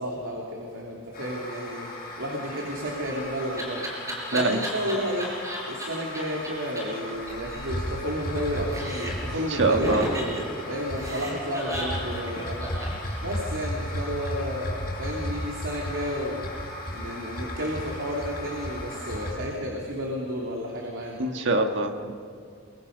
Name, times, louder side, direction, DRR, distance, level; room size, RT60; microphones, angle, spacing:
voice 1, 0.0-1.9 2.2-3.9 4.3-5.3 5.6-10.2 10.7-12.7 13.2-16.4 16.9-21.2, equal, 85° right, -2 dB, 3.0 m, -32 dB
sound 1, 1.1-19.3, left 1 dB, 45° left, 6.3 m, -35 dB
Laughter, 2.7-5.8 6.1-6.2 6.4-6.5 6.8-6.9 7.1-8.4 8.7-9.3 9.8-13.6, equal, 15° right, 5.1 m, -34 dB
voice 2, 9.3-10.1 21.2-22.1, right 2 dB, 65° right, 4 dB, 1.7 m, -24 dB
28.0 x 22.5 x 5.4 m, 2.4 s
head